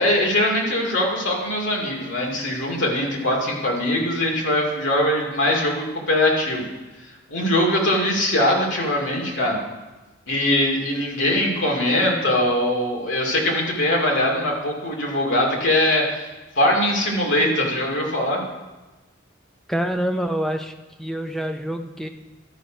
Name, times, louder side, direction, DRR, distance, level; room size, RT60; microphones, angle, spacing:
voice 1, 0.0-6.6 7.3-9.6 10.3-16.3 16.6-18.4, left 1 dB, 80° left, -1 dB, 2.4 m, -21 dB
voice 2, 19.7-20.7 21.0-22.1, equal, ahead, 5 dB, 0.5 m, -26 dB
12.5 x 6.1 x 5.1 m, 1.1 s
head